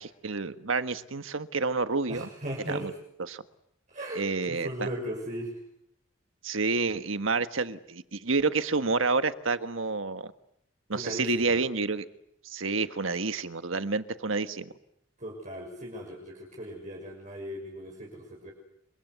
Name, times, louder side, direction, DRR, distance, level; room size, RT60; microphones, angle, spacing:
voice 1, 0.0-2.3 2.7-2.9 3.3-3.4 4.1-4.7 6.4-10.3 10.9-12.1 12.4-14.7, right 4 dB, 85° right, 10 dB, 1.5 m, -29 dB
voice 2, 2.1-2.9 3.9-5.6 10.9-11.6 15.2-18.5, equal, 40° right, -1 dB, 6.5 m, -37 dB
29.5 x 24.0 x 8.2 m, 0.76 s
head